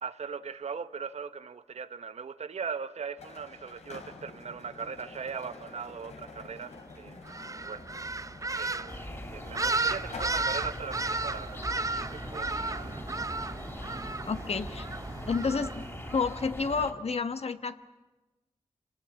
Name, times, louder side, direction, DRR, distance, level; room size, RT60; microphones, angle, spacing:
voice 1, 0.0-7.2 7.6-7.8 8.5-13.0, right 6 dB, 75° right, 1.0 m, -39 dB
sound 1, 3.2-10.3, left 3 dB, 85° left, 3.0 m, -48 dB
sound 2, 7.2-16.3, right 3 dB, 30° right, 0.7 m, -34 dB
sound 3, 8.9-16.9, left 1 dB, 25° left, 3.3 m, -42 dB
voice 2, 14.3-14.9 15.3-15.8 16.1-17.8, left 4 dB, 65° left, 1.2 m, -30 dB
26.5 x 19.5 x 8.4 m
cardioid pair, 55°, 11 cm